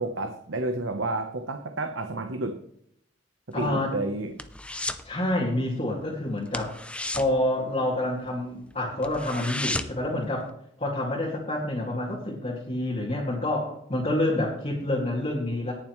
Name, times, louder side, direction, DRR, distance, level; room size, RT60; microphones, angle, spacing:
voice 1, 0.0-2.6 3.6-4.3, right 2 dB, 70° right, 6 dB, 1.0 m, -30 dB
voice 2, 3.5-4.0 5.0-6.7 7.1-10.5 10.8-15.7, left 1 dB, 30° left, -4 dB, 2.4 m, -28 dB
sound 1, 3.5-5.1 5.4-5.7 6.0-6.1 6.5-8.3 8.7-8.8 9.0-10.1 10.5-10.6, left 2 dB, 5° left, 0.5 m, -34 dB
18.5 x 7.2 x 3.2 m, 0.70 s
head